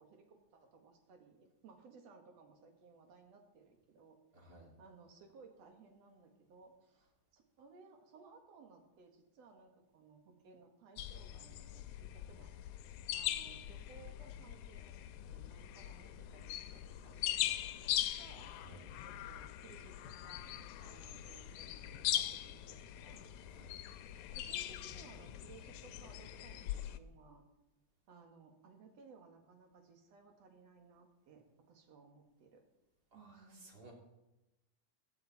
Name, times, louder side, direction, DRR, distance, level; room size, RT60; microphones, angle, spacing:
voice 1, 0.0-4.2 4.5-12.5 13.1-15.0 15.3-18.5 19.0-23.3 24.3-27.4 28.1-32.6 33.1-33.7, right 4 dB, 60° right, 4 dB, 2.8 m, -60 dB
voice 2, 4.3-4.7 18.6-18.8 23.4-23.7 33.1-33.9, right 2 dB, 30° right, -1 dB, 3.6 m, -58 dB
sound 1, 11.0-27.0, left 12 dB, 85° left, 2.1 m, -41 dB
16.5 x 13.0 x 4.2 m, 1.0 s
omnidirectional pair, 3.5 m